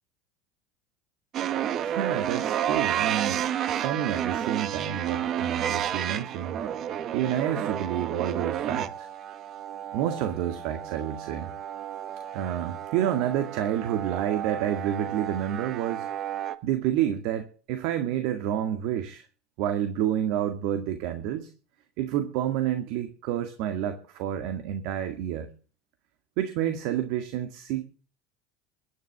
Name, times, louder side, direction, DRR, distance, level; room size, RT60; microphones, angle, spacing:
sound 1, 1.3-16.6, right 10 dB, 50° right, 1.5 m, -31 dB
voice 1, 1.8-3.4 3.7-6.6 7.1-9.1 9.9-11.5 12.3-16.1 16.6-19.2 19.6-21.5 22.0-25.5 26.4-27.8, right 10 dB, 65° right, 8 dB, 1.9 m, -29 dB
23.0 x 10.5 x 3.6 m, 0.38 s
hypercardioid pair, 80°, 0 cm